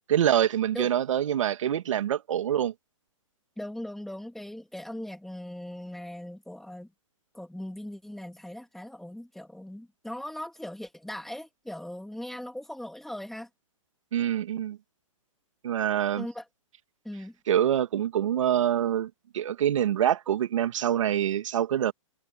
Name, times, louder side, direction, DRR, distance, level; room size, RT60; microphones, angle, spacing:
voice 1, 0.1-2.7 14.1-14.8 15.6-16.3 17.5-21.9, right 10 dB, 65° right, 2.1 m, -25 dB
voice 2, 3.6-6.9 7.3-13.5 16.2-16.5 17.0-17.4, left 1 dB, ahead, 3.0 m, -39 dB
hypercardioid pair, 145°, 17 cm